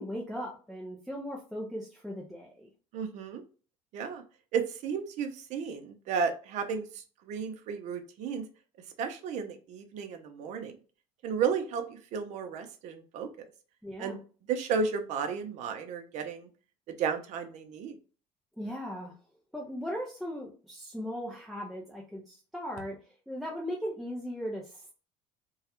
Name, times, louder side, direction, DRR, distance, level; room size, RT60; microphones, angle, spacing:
voice 1, 0.0-2.7 13.8-14.2 18.6-19.1 19.5-23.0 23.3-24.9, equal, ahead, -3 dB, 0.4 m, -38 dB
voice 2, 2.9-3.4 3.9-4.2 4.5-8.4 9.0-10.8 11.2-13.5 14.0-14.2 14.5-16.5 16.9-18.0, right 6 dB, 60° right, 7 dB, 0.5 m, -33 dB
2.3 x 2.0 x 2.8 m, 0.38 s
cardioid pair, 130°, 14 cm